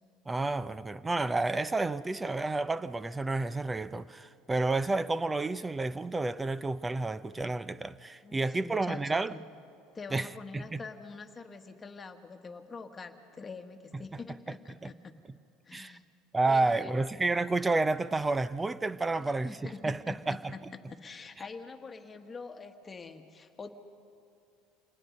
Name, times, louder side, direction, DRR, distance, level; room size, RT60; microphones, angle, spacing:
voice 1, 0.3-9.3 10.1-10.3 10.5-10.8 14.8-14.9 15.7-16.0 16.3-20.5, right 3 dB, 15° right, 0.6 m, -30 dB
voice 2, 8.2-9.4 9.9-15.1 15.6-16.1 16.5-17.1 19.2-20.6 20.9-23.7, left 4 dB, 25° left, 1.6 m, -45 dB
27.0 x 19.5 x 5.4 m
supercardioid pair, 90°, 0 cm